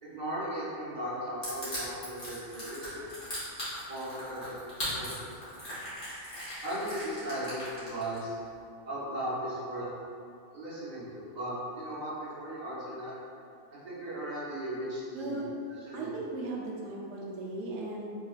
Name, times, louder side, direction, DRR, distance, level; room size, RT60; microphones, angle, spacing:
voice 1, 0.0-3.1 3.8-5.3 6.6-8.4 8.8-9.9 10.5-13.1 13.7-16.2, right 1 dB, 40° right, -10 dB, 1.1 m, -37 dB
Crushing, 1.4-8.2, equal, 50° left, 1.3 m, -39 dB
voice 2, 15.1-15.4 15.9-18.2, right 2 dB, 75° right, -3 dB, 0.9 m, -37 dB
3.6 x 3.1 x 2.4 m, 2.4 s
omnidirectional pair, 1.2 m